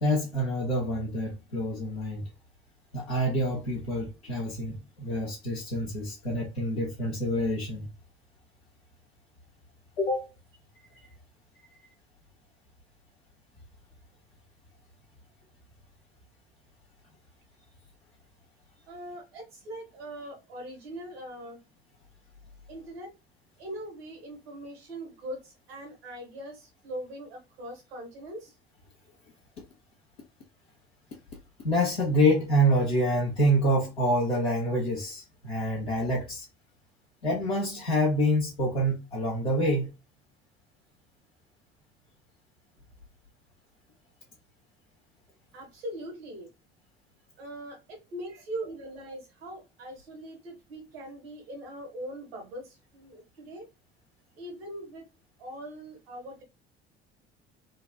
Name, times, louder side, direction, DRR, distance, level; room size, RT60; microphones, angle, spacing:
voice 1, 0.0-2.2 2.9-7.9 10.0-10.3 10.9-11.0 31.6-36.5 37.2-39.9, equal, 80° left, 1.1 m, -27 dB
voice 2, 18.9-21.6 22.7-23.1 23.6-28.5 45.5-46.5 47.4-53.7 54.4-55.0 55.4-56.4, right 1 dB, 75° right, 1.3 m, -41 dB
4.0 x 2.5 x 2.2 m
figure-of-eight pair, 55°, 31 cm